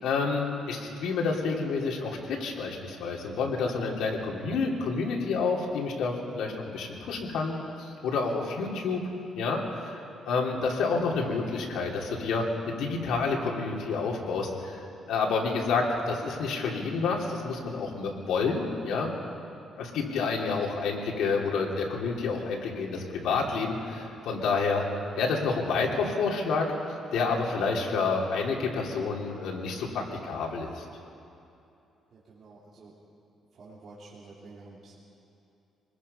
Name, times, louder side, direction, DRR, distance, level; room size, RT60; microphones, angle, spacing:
voice 1, 0.0-9.0 9.4-14.8 15.1-19.1 19.8-24.8 25.2-26.7 27.1-30.8, left 4 dB, 90° left, -1 dB, 3.1 m, -29 dB
voice 2, 32.1-32.9 33.5-35.0, right 3 dB, 45° right, -7 dB, 3.3 m, -49 dB
25.0 x 20.5 x 5.6 m, 2.8 s
cardioid pair, 155°, 0 cm